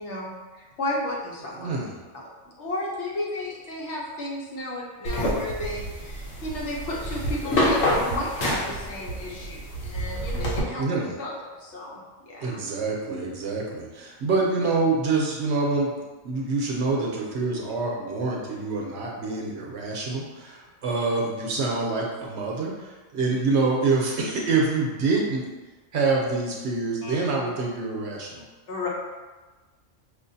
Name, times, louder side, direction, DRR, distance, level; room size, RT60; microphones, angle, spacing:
voice 1, 0.0-1.7 2.1-2.3 2.6-10.9 11.2-12.0 12.3-12.6 23.1-23.4 27.0-27.1 28.7-28.9, left 1 dB, 65° left, -3 dB, 1.0 m, -33 dB
voice 2, 1.6-1.9 10.8-11.1 12.4-15.9 16.2-25.5 25.9-28.4, right 3 dB, 65° right, -2 dB, 0.9 m, -26 dB
sound 1, 5.1-10.6, equal, 85° left, 1.2 m, -27 dB
5.0 x 2.5 x 2.6 m, 1.3 s
omnidirectional pair, 1.3 m